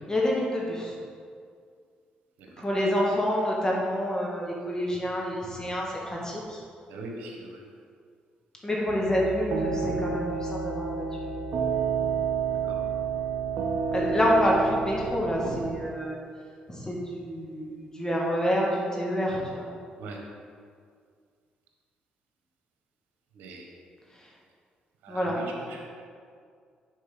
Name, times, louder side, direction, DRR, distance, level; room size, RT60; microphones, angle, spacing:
voice 1, 0.1-0.9 2.6-6.6 8.6-11.1 13.9-16.2 16.7-19.6 25.1-25.4, equal, 20° left, -3 dB, 1.9 m, -27 dB
voice 2, 6.9-7.6 12.7-12.8 20.0-20.2 23.3-23.6 25.0-25.9, right 2 dB, 80° right, 0 dB, 1.2 m, -40 dB
sound 1, 8.9-15.7, right 5 dB, 65° right, 0.8 m, -30 dB
6.4 x 4.5 x 5.9 m, 2.2 s
supercardioid pair, 65°, 3 cm